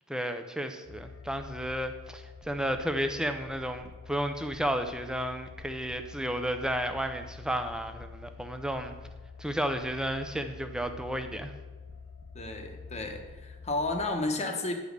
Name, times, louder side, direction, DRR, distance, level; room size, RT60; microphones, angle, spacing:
voice 1, 0.1-8.9 9.4-11.5, equal, 5° right, 7 dB, 0.6 m, -32 dB
sound 1, 0.8-14.1, left 5 dB, 60° left, 1.2 m, -47 dB
voice 2, 12.3-14.7, left 2 dB, 30° left, 4 dB, 1.1 m, -32 dB
10.5 x 5.2 x 6.6 m, 1.2 s
head